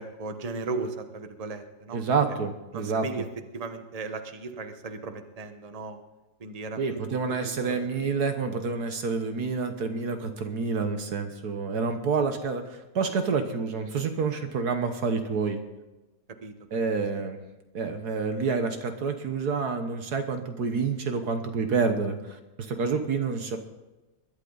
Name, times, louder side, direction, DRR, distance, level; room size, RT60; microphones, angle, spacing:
voice 1, 0.0-2.0 2.7-3.2 3.5-6.0 6.4-7.0 7.3-8.2 16.4-16.5 17.1-17.2, right 3 dB, 25° right, 7 dB, 0.9 m, -36 dB
voice 2, 1.9-3.1 6.8-15.6 16.7-17.4 17.7-23.6, right 5 dB, 70° right, 7 dB, 1.6 m, -28 dB
21.5 x 11.5 x 4.0 m, 1.1 s
omnidirectional pair, 1.8 m